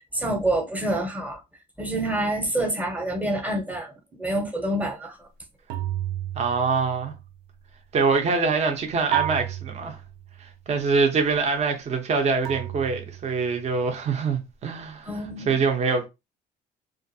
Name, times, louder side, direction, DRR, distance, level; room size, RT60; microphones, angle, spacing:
voice 1, 0.1-1.4 1.8-3.9 4.2-5.2 15.1-15.6, right 1 dB, 10° right, 0.8 m, -27 dB
sound 1, 5.7-7.4 9.1-10.5 12.4-13.7, right 12 dB, 90° right, 0.4 m, -32 dB
voice 2, 6.3-7.1 7.9-10.0 10.4-16.1, right 4 dB, 40° right, 0.7 m, -24 dB
2.5 x 2.5 x 2.6 m
cardioid pair, 110°, 17 cm